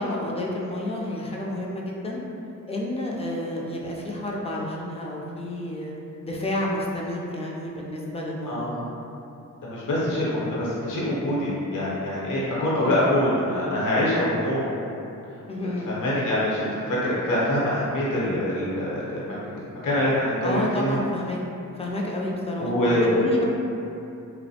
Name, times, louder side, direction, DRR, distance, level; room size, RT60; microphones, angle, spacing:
voice 1, 0.0-2.2 2.7-5.9 6.2-8.7 12.7-13.0 15.5-15.9 20.4-21.4 21.7-22.7 23.0-23.4, left 1 dB, 20° left, -3 dB, 0.4 m, -30 dB
voice 2, 8.5-8.8 9.6-14.6 15.9-19.5 19.8-21.0 22.6-23.1, left 1 dB, 65° left, -8 dB, 0.8 m, -25 dB
2.6 x 2.0 x 2.7 m, 2.8 s
cardioid pair, 65°, 35 cm